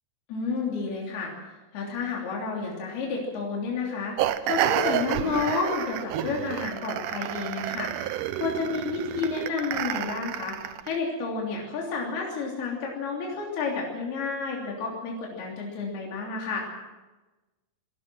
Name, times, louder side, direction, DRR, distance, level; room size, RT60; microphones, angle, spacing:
voice 1, 0.3-1.3 1.7-16.7, left 4 dB, 75° left, -2 dB, 5.2 m, -31 dB
sound 1, 4.2-11.0, right 11 dB, 75° right, 2.1 m, -30 dB
27.0 x 19.5 x 6.2 m, 1.1 s
omnidirectional pair, 4.5 m